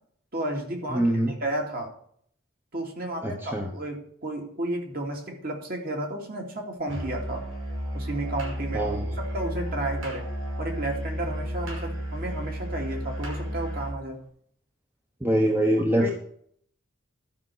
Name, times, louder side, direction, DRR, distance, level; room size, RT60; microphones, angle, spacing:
voice 1, 0.3-1.9 2.7-7.4 7.9-8.9 9.2-10.3 10.6-14.2 16.0-16.2, right 1 dB, 45° right, 1 dB, 2.6 m, -32 dB
voice 2, 0.9-1.3 3.2-3.7 8.7-9.1 15.2-16.2, right 1 dB, 10° right, 2 dB, 1.0 m, -24 dB
Musical instrument, 6.9-14.0, equal, 70° right, 6.1 m, -33 dB
12.0 x 5.9 x 7.8 m, 0.62 s
head